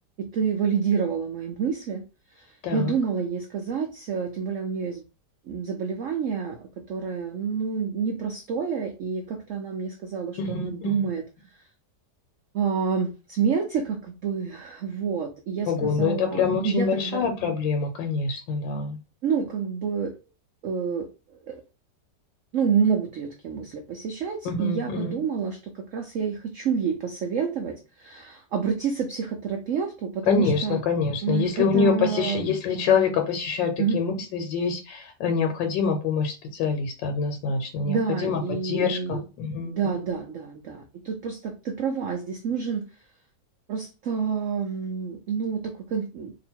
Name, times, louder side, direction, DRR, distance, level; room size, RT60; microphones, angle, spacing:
voice 1, 0.2-2.0 2.3-5.0 5.5-11.2 11.5-11.6 12.5-17.3 19.2-20.1 20.6-21.6 22.5-30.8 31.2-32.5 33.8-34.0 37.8-39.2 39.7-42.8 43.7-46.3, right 6 dB, 70° right, 3 dB, 0.7 m, -28 dB
voice 2, 2.6-3.0 10.4-11.1 15.7-19.0 24.4-25.2 30.3-39.9, left 5 dB, 85° left, 4 dB, 1.4 m, -25 dB
2.9 x 2.5 x 4.3 m, 0.31 s
omnidirectional pair, 2.0 m